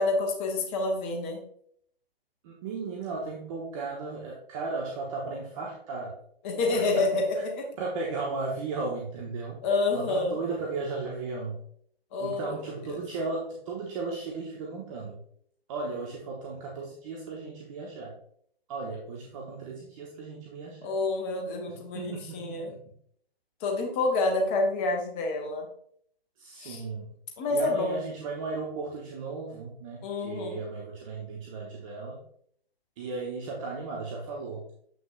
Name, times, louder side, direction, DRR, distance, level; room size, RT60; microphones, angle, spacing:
voice 1, 0.0-1.4 6.4-7.6 9.6-10.4 12.1-12.4 12.9-13.0 20.8-22.7 23.6-25.7 26.6-26.8 27.4-28.0 30.0-30.6, left 3 dB, 10° left, 1 dB, 0.4 m, -28 dB
voice 2, 2.4-6.2 6.7-7.4 7.8-9.6 9.9-11.6 12.2-15.2 15.7-18.1 18.7-20.9 21.7-22.8 26.4-27.1 27.5-32.2 33.0-34.6, right 3 dB, 30° right, -2 dB, 1.0 m, -35 dB
7.4 x 5.9 x 2.4 m, 0.64 s
figure-of-eight pair, 130°, 31 cm